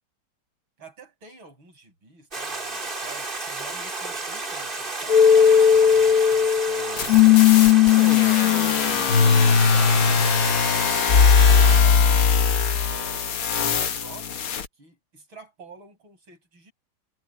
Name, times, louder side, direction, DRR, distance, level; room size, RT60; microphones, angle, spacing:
voice 1, 0.8-10.5 10.9-12.4 12.9-16.7, right 3 dB, 65° right, 8.0 m, -48 dB
Stream, 2.3-11.8, right 3 dB, 25° right, 2.2 m, -32 dB
sound 1, 5.1-13.0, left 7 dB, 50° left, 1.3 m, -17 dB
sound 2, 7.0-14.7, left 7 dB, 80° left, 2.6 m, -26 dB
omnidirectional pair, 2.3 m